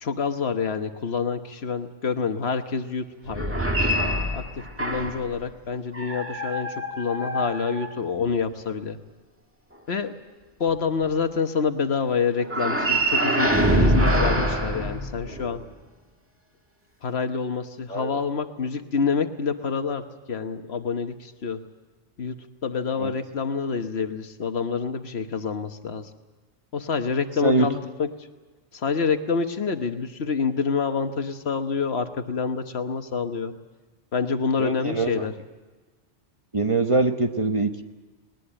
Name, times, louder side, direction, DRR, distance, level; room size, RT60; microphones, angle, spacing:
voice 1, 0.0-3.6 4.3-9.0 9.9-10.2 10.6-15.6 17.0-21.6 22.2-26.1 26.7-28.1 28.7-33.5 34.1-35.3, left 5 dB, 65° left, 8 dB, 1.4 m, -27 dB
sound 1, 3.3-5.3 5.9-8.3 12.4-15.6, equal, 10° right, 1.8 m, -24 dB
voice 2, 34.6-35.2 36.5-37.8, right 3 dB, 30° right, 6 dB, 1.0 m, -23 dB
20.0 x 20.0 x 8.8 m, 1.3 s
omnidirectional pair, 1.2 m